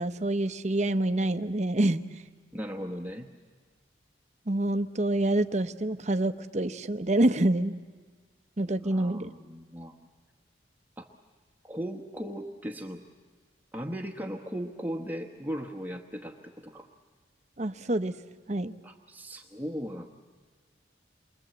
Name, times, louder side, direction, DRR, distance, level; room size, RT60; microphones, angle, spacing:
voice 1, 0.0-2.2 4.5-7.7 8.6-9.3 17.6-18.2 18.5-18.7, right 1 dB, 40° right, 10 dB, 0.8 m, -27 dB
voice 2, 2.5-3.3 8.8-10.0 11.0-11.1 11.6-13.0 13.7-16.9 18.8-20.1, equal, 10° right, 3 dB, 1.1 m, -37 dB
28.5 x 24.0 x 7.9 m, 1.5 s
head